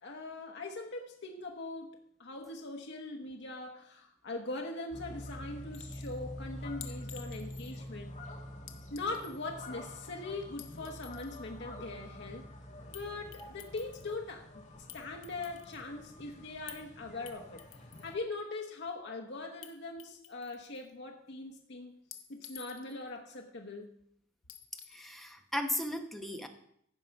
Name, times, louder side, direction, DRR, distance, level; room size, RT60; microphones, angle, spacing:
voice 1, 0.0-8.2 8.9-12.5 12.9-14.6 14.9-17.6 18.0-21.9 22.3-24.0, left 2 dB, 60° left, 1 dB, 1.1 m, -41 dB
sound 1, 4.9-18.1, left 1 dB, 40° left, 2.0 m, -46 dB
Chink clink, 5.7-6.2 6.8-7.9 8.7-9.4 10.4-11.4 12.9-13.1 13.3-14.1 14.9-15.8 16.7-16.8 17.3-18.1 19.6-19.7 20.0-20.9 22.1-23.1 24.5-25.0, left 10 dB, 80° left, 1.0 m, -51 dB
voice 2, 24.9-26.5, left 1 dB, ahead, 4 dB, 1.0 m, -36 dB
15.5 x 5.7 x 5.3 m, 0.70 s
head